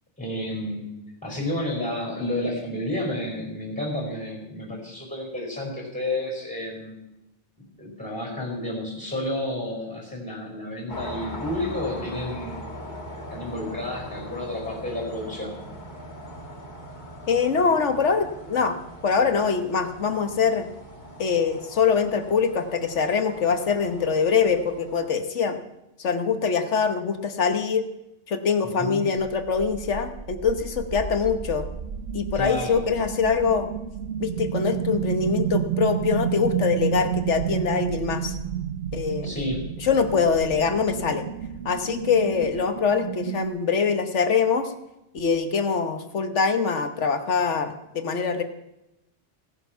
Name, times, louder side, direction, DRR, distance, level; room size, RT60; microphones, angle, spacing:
voice 1, 0.2-0.9 1.2-7.0 7.8-12.9 13.3-15.5 28.8-29.1 32.3-32.8 39.2-39.7, left 1 dB, 5° left, 0 dB, 4.8 m, -31 dB
sound 1, 10.9-25.2, equal, 40° left, 2.0 m, -41 dB
voice 2, 17.3-18.8 19.0-20.7 21.2-25.6 26.0-27.8 28.3-31.7 32.1-33.7 34.2-38.3 38.9-39.3 39.8-41.2 41.6-44.7 45.1-48.4, left 5 dB, 75° left, 8 dB, 1.5 m, -23 dB
sound 2, 29.2-43.5, right 9 dB, 65° right, 1.1 m, -31 dB
17.5 x 10.0 x 5.8 m, 0.92 s
omnidirectional pair, 1.2 m